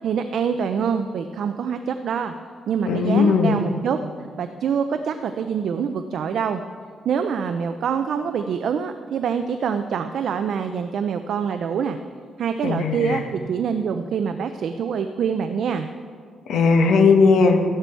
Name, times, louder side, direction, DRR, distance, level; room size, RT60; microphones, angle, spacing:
voice 1, 0.0-2.3 2.7-4.0 4.4-6.6 7.0-12.0 12.4-15.9, right 7 dB, 55° right, 8 dB, 0.5 m, -25 dB
voice 2, 2.9-3.6 12.6-13.2 16.5-17.6, left 4 dB, 75° left, 4 dB, 1.4 m, -17 dB
14.0 x 11.0 x 4.5 m, 2.1 s
cardioid pair, 175°, 0 cm